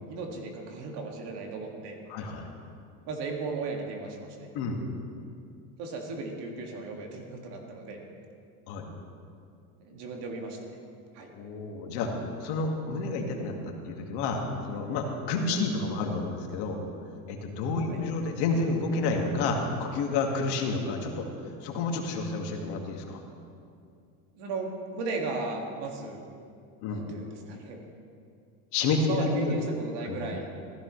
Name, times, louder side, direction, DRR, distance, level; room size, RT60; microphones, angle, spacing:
voice 1, 0.0-2.0 3.1-4.5 5.8-8.0 9.8-10.6 11.1-11.3 17.9-18.0 24.3-26.2 26.9-27.8 29.0-30.5, right 3 dB, 60° right, 1 dB, 2.2 m, -36 dB
voice 2, 2.1-2.4 4.5-4.8 8.7-8.9 11.3-12.1 12.4-16.8 17.3-23.2 26.8-27.1 28.7-29.6 30.0-30.2, left 3 dB, 65° left, 2 dB, 2.0 m, -30 dB
15.5 x 14.5 x 3.2 m, 2.4 s
supercardioid pair, 115°, 44 cm